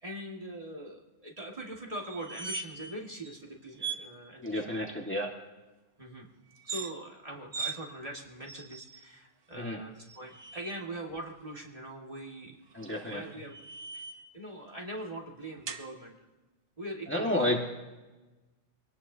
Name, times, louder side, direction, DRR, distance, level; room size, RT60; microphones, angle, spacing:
voice 1, 0.0-5.0 6.0-6.3 6.6-13.6 13.9-14.1 14.3-16.2 16.8-17.6, right 1 dB, 30° right, -2 dB, 2.1 m, -42 dB
sound 1, 2.0-2.9 3.2-3.4 3.8-4.0 6.5-6.9 7.5-7.8 8.5-9.0 10.0-10.8 12.7-14.3 15.7-15.9, right 5 dB, 55° right, 1.1 m, -40 dB
voice 2, 4.4-5.3 9.5-9.8 12.7-13.2 17.1-17.6, left 1 dB, 10° left, 0 dB, 1.6 m, -30 dB
25.0 x 18.5 x 2.8 m, 1.2 s
omnidirectional pair, 1.2 m